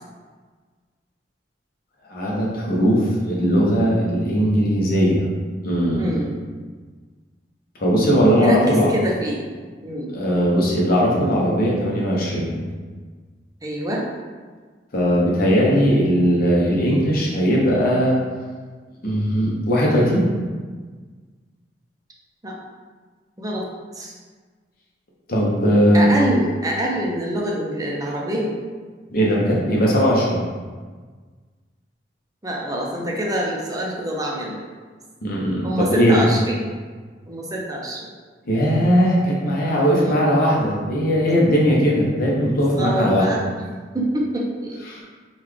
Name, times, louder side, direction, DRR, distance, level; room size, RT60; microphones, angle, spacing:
voice 1, 2.1-5.3 5.6-6.3 7.8-8.9 10.1-12.6 14.9-18.2 19.0-20.3 25.3-26.2 29.1-30.4 35.2-36.2 38.5-43.3 44.9-45.0, equal, 55° left, -3 dB, 0.8 m, -19 dB
voice 2, 6.0-6.3 8.4-9.4 9.8-10.1 13.6-14.0 22.4-22.5 23.4-23.7 23.9-24.1 25.9-28.6 32.4-34.6 35.6-36.6 37.3-38.1 40.0-40.3 42.8-43.4 43.9-44.8, right 1 dB, 20° right, -2 dB, 0.5 m, -25 dB
3.9 x 2.3 x 3.1 m, 1.5 s
head